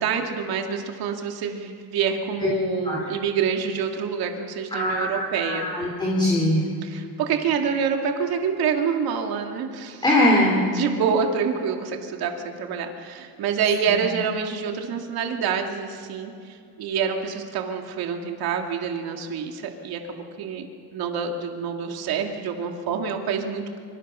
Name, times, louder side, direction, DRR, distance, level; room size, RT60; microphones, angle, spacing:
voice 1, 0.0-5.7 6.8-10.0 10.7-20.7 20.9-23.8, right 6 dB, 55° right, 3 dB, 2.4 m, -27 dB
voice 2, 4.7-6.6 10.0-10.6 13.9-14.0, left 1 dB, 10° left, -4 dB, 3.6 m, -21 dB
26.0 x 25.0 x 5.7 m, 2.4 s
cardioid pair, 165°, 43 cm